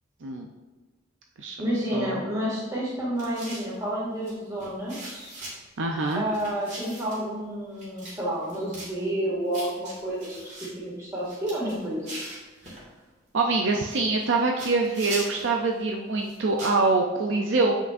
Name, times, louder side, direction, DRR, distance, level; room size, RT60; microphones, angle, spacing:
voice 1, 1.6-5.3 6.2-12.2, right 1 dB, 15° right, -6 dB, 2.1 m, -30 dB
sound 1, 3.2-3.7 4.2-4.3 4.6-5.5 6.0-7.2 7.8-8.2 8.4-8.9 9.5-10.7 11.2-12.8 13.7-14.3 14.6-15.5 16.2-16.8, right 1 dB, 35° right, 2.1 m, -40 dB
voice 2, 5.8-6.2 13.3-17.7, right 3 dB, 60° right, 2 dB, 0.5 m, -24 dB
7.7 x 5.8 x 2.6 m, 1.3 s
head